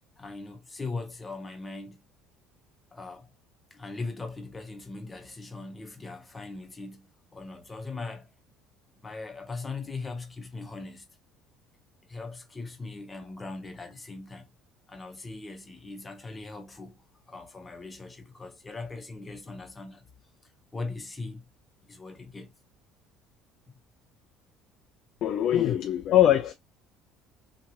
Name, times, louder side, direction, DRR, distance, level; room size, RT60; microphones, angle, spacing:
voice 1, 0.2-2.0 2.9-3.3 3.7-8.3 9.0-11.1 12.1-14.5 14.9-20.0 20.4-21.4 21.8-22.5 23.7-23.8 25.6-25.7, left 3 dB, 20° left, 0.8 m, -40 dB
voice 2, 25.2-26.5, left 11 dB, 60° left, 0.4 m, -22 dB
2.9 x 2.4 x 2.8 m
supercardioid pair, 95°, 0 cm